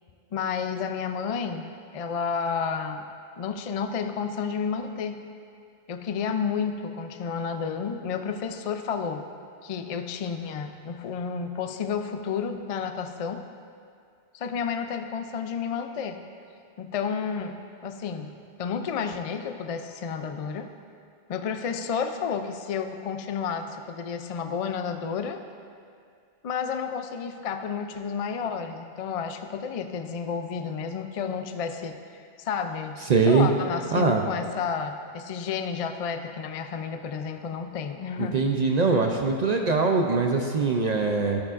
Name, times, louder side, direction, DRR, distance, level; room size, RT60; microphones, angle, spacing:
voice 1, 0.3-1.7 1.9-3.1 3.4-5.2 5.9-9.3 9.6-13.4 14.3-16.2 16.8-17.6 17.8-20.7 21.3-25.4 26.4-32.0 32.4-38.4, left 6 dB, 60° left, 7 dB, 0.3 m, -31 dB
voice 2, 33.1-33.5 33.9-34.2 38.2-41.4, right 4 dB, 50° right, 2 dB, 0.5 m, -22 dB
13.5 x 8.5 x 2.5 m, 2.3 s
omnidirectional pair, 1.1 m